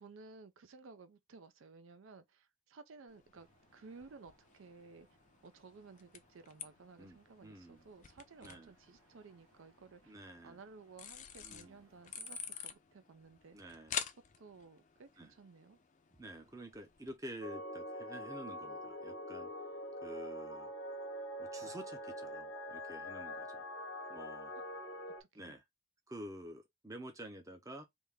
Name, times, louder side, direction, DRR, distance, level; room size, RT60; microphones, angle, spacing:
voice 1, 0.0-5.1 5.4-10.1 10.4-13.8 14.4-15.8 24.5-24.6 25.2-25.6, right 4 dB, 65° right, 0.5 m, -56 dB
sound 1, 3.1-17.2, left 8 dB, 35° left, 0.5 m, -50 dB
Screech, 3.4-12.7, right 4 dB, 85° right, 1.2 m, -63 dB
voice 2, 7.0-7.9 8.4-8.7 10.1-10.6 11.4-11.8 13.5-14.0 15.2-15.3 16.1-19.5 20.0-20.7 21.4-23.7 24.1-24.5 25.3-25.6 26.1-27.8, right 1 dB, 15° right, 0.6 m, -49 dB
sound 2, 17.4-25.2, equal, 85° left, 1.1 m, -44 dB
3.5 x 2.7 x 3.4 m
head